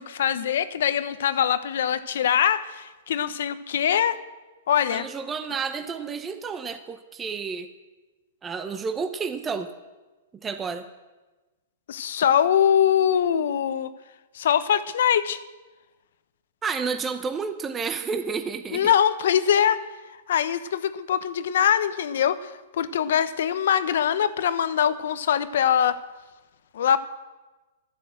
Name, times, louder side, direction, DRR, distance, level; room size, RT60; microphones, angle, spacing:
voice 1, 0.0-4.2 4.7-5.1 11.9-13.9 14.3-15.4 18.7-19.8 20.3-26.0 26.7-27.0, left 9 dB, 70° left, 13 dB, 0.9 m, -23 dB
voice 2, 4.9-7.7 8.4-9.7 10.4-10.9 16.6-18.9, right 5 dB, 15° right, 8 dB, 0.8 m, -30 dB
12.0 x 11.0 x 7.8 m, 1.2 s
hypercardioid pair, 155°, 0 cm